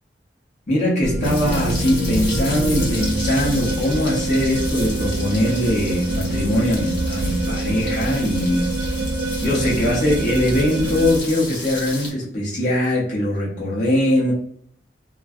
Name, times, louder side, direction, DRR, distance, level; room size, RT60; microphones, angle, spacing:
voice 1, 0.7-8.7 9.4-14.3, left 1 dB, 45° left, -4 dB, 0.7 m, -21 dB
sound 1, 1.0-11.2, right 1 dB, 65° right, 0.4 m, -25 dB
sound 2, 1.2-12.1, left 2 dB, 70° left, 1.0 m, -33 dB
2.5 x 2.2 x 2.2 m, 0.63 s
head